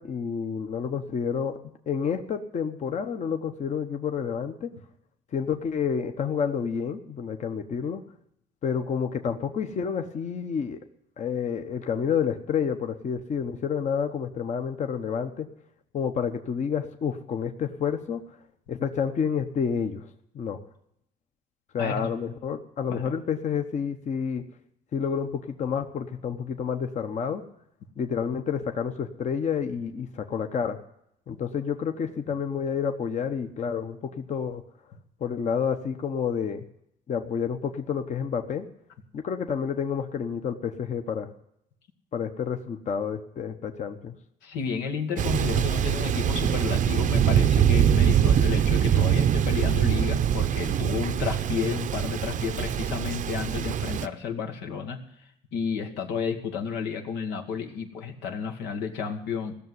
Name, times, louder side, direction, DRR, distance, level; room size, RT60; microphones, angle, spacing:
voice 1, 0.0-4.7 5.3-8.0 8.6-10.8 11.2-15.5 15.9-18.2 18.7-20.1 20.3-20.6 21.7-24.4 24.9-27.4 28.0-30.8 31.3-34.6 35.2-36.7 37.1-38.7 39.1-41.3 42.1-44.1, left 7 dB, 45° left, 6 dB, 1.0 m, -29 dB
voice 2, 44.4-55.0 55.5-59.5, left 6 dB, 90° left, 4 dB, 1.8 m, -32 dB
Thunder, 45.2-54.1, right 9 dB, 50° right, 0.6 m, -23 dB
16.0 x 6.8 x 9.5 m, 0.75 s
cardioid pair, 110°, 17 cm